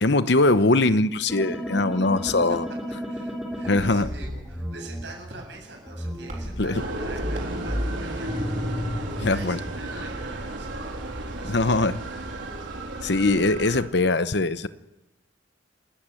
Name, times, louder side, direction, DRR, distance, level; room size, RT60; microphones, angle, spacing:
voice 1, 0.0-2.7 3.7-4.1 6.6-6.8 9.2-9.6 11.5-12.0 13.0-14.7, left 2 dB, 65° left, 1.0 m, -21 dB
sound 1, 1.3-5.0 5.9-9.4, equal, ahead, 4.3 m, -32 dB
voice 2, 3.0-12.0, right 2 dB, 65° right, 8.0 m, -44 dB
sound 2, 3.2-8.8, right 1 dB, 45° right, 4.0 m, -47 dB
sound 3, 6.7-13.8, right 1 dB, 85° right, 3.9 m, -34 dB
28.5 x 13.5 x 9.1 m
head